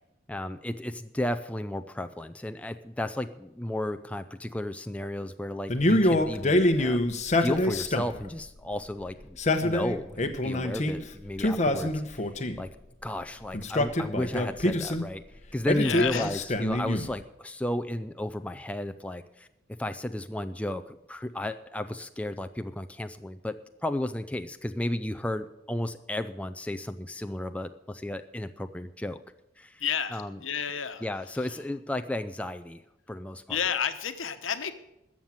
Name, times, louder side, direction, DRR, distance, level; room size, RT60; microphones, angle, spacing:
voice 1, 0.3-7.1 7.4-12.3 12.6-12.7 13.0-15.2 15.5-19.5 19.8-23.5 23.8-29.2 29.6-29.8 30.1-30.4 31.0-32.8 33.1-33.6, left 1 dB, 5° left, 8 dB, 0.4 m, -33 dB
Male speech man speaking, 5.7-8.3 9.2-11.0 11.4-12.7 13.5-15.1 15.7-17.2, left 1 dB, 35° left, 1.0 m, -26 dB
voice 2, 15.8-16.4 29.8-31.0 31.4-31.5 33.5-34.7, left 7 dB, 80° left, 9 dB, 1.1 m, -31 dB
13.5 x 7.4 x 8.9 m, 0.90 s
head